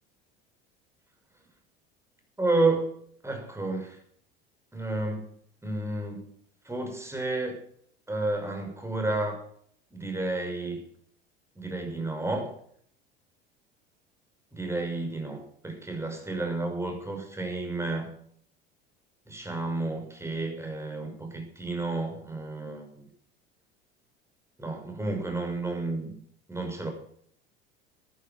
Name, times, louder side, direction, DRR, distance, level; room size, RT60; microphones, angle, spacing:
voice 1, 2.4-2.9 3.2-4.0 4.7-5.3 5.6-6.3 6.6-7.6 8.1-9.4 9.9-10.8 11.6-12.5 14.5-18.1 19.3-23.1 24.6-26.2 26.5-26.9, right 2 dB, 10° right, 4 dB, 6.2 m, -31 dB
14.0 x 10.5 x 7.4 m, 0.62 s
hypercardioid pair, 75°, 30 cm